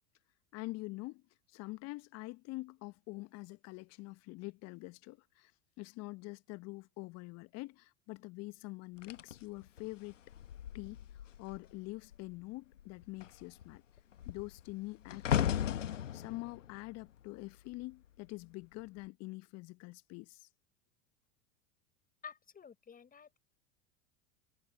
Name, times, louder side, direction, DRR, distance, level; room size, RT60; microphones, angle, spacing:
voice 1, 0.5-1.2 1.5-5.5 5.8-10.2 10.7-11.0 11.4-13.8 14.2-20.5, left 22 dB, 45° left, 1.1 m, -45 dB
sound 1, 9.0-11.7 12.0-12.4 12.7-18.1 18.8-19.1, left 10 dB, 80° left, 1.1 m, -37 dB
voice 2, 22.2-23.4, left 7 dB, 25° left, 7.3 m, -51 dB
hypercardioid pair, 90°, 37 cm